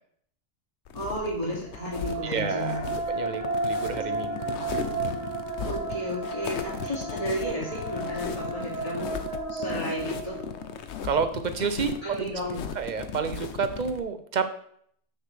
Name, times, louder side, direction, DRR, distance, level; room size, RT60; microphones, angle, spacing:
sound 1, 0.9-14.0, left 7 dB, 75° left, 1.0 m, -37 dB
voice 1, 0.9-2.9 5.6-9.1 9.5-10.4 12.0-12.7, equal, 30° left, -6 dB, 2.6 m, -33 dB
sound 2, 1.7-10.9, right 3 dB, 15° right, 1.2 m, -33 dB
voice 2, 2.2-2.8 3.1-4.6 11.0-12.3 12.8-14.5, right 5 dB, 50° right, 9 dB, 0.6 m, -29 dB
7.2 x 6.4 x 3.3 m, 0.63 s
omnidirectional pair, 1.2 m